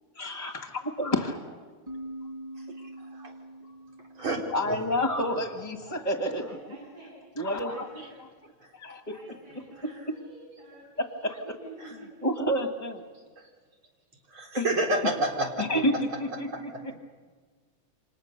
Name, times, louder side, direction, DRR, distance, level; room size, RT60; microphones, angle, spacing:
voice 1, 0.1-1.3 3.6-3.7 4.5-6.5 7.4-7.9 8.7-9.2 9.8-10.2 11.0-11.4 12.2-13.0 14.6-14.7 15.6-16.9, equal, 20° left, 5 dB, 1.7 m, -29 dB
voice 2, 1.0-1.4 5.8-7.1 7.7-8.1 9.1-11.3 11.6-12.3, right 1 dB, 50° right, -3 dB, 7.8 m, -49 dB
sound 1, 1.9-5.5, right 1 dB, 35° right, 0.6 m, -44 dB
voice 3, 3.0-3.4 4.2-4.8 8.6-8.9 9.8-10.1 11.8-11.9 13.4-13.5 14.3-15.6 16.7-16.9, right 1 dB, 75° right, 0 dB, 4.7 m, -30 dB
29.0 x 25.5 x 6.7 m, 1.5 s
omnidirectional pair, 2.3 m